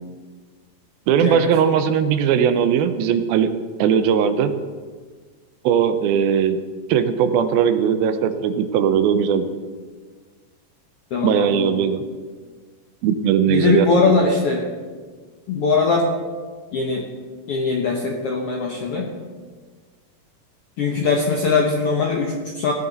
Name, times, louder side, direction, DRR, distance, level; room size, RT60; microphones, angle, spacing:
voice 1, 1.1-3.5 3.8-4.5 5.6-6.6 6.9-9.5 11.2-12.0 13.0-14.3, right 8 dB, 85° right, 10 dB, 2.7 m, -19 dB
voice 2, 11.1-11.9 13.5-14.7 15.5-16.1 16.7-17.1 17.5-19.1 20.8-22.7, left 4 dB, 70° left, 1 dB, 1.4 m, -21 dB
17.5 x 11.0 x 4.1 m, 1.5 s
omnidirectional pair, 4.2 m